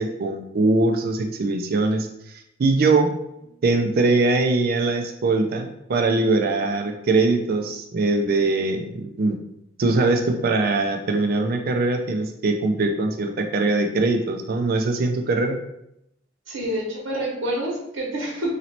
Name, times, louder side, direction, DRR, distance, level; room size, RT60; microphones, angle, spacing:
voice 1, 0.0-2.1 2.6-3.1 3.6-9.4 9.8-15.6, right 3 dB, 50° right, 4 dB, 0.4 m, -22 dB
voice 2, 16.5-18.5, right 1 dB, 80° right, -2 dB, 1.2 m, -27 dB
3.0 x 2.8 x 4.2 m, 0.80 s
head